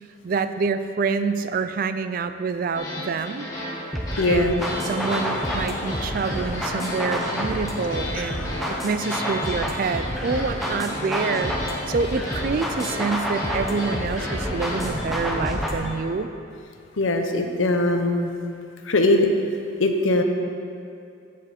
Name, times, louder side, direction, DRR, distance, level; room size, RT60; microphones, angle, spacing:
voice 1, 0.2-3.5 4.3-16.3, right 4 dB, 45° right, 11 dB, 0.3 m, -27 dB
sound 1, 2.7-14.9, left 1 dB, 15° left, 2.0 m, -34 dB
sound 2, 3.9-15.9, equal, ahead, 0.8 m, -29 dB
voice 2, 4.2-4.5 17.0-18.3 18.8-19.3 19.8-20.2, left 2 dB, 70° left, 5 dB, 0.8 m, -20 dB
sound 3, 4.6-15.8, left 3 dB, 35° left, 0.4 m, -37 dB
14.0 x 5.1 x 4.2 m, 2.5 s
head